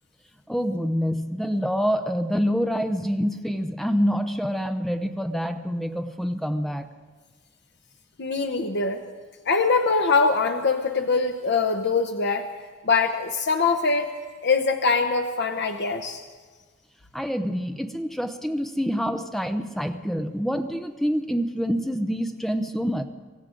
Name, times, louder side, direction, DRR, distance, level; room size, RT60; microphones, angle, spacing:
voice 1, 0.5-6.9 17.1-23.0, equal, ahead, 7 dB, 0.8 m, -26 dB
voice 2, 8.2-9.0 9.5-12.5 12.8-14.1 14.4-16.2, left 4 dB, 60° left, 5 dB, 0.8 m, -23 dB
25.0 x 15.0 x 3.8 m, 1.4 s
head